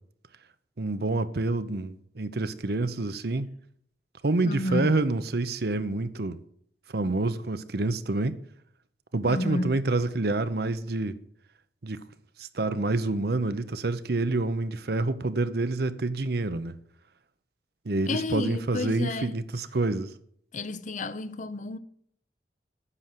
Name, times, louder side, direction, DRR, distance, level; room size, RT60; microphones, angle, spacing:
voice 1, 0.8-3.5 4.2-6.4 6.9-8.3 9.1-11.2 11.8-12.0 12.4-16.7 17.9-20.1, right 2 dB, 60° right, 0.8 m, -27 dB
voice 2, 4.4-4.9 9.3-9.7 18.1-19.4 20.5-21.8, left 2 dB, 45° left, 0.6 m, -31 dB
9.9 x 6.5 x 7.5 m
head